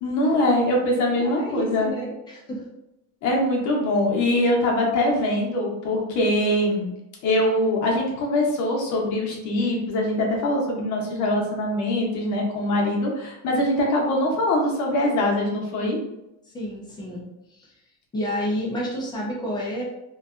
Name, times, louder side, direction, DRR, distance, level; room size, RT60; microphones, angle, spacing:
voice 1, 0.0-1.9 3.2-6.9 7.2-16.0, left 1 dB, 45° left, -1 dB, 0.7 m, -23 dB
voice 2, 1.2-2.7 16.5-17.7 18.1-19.8, equal, 10° left, -4 dB, 0.3 m, -30 dB
2.6 x 2.3 x 2.3 m, 0.90 s
cardioid pair, 170°, 40 cm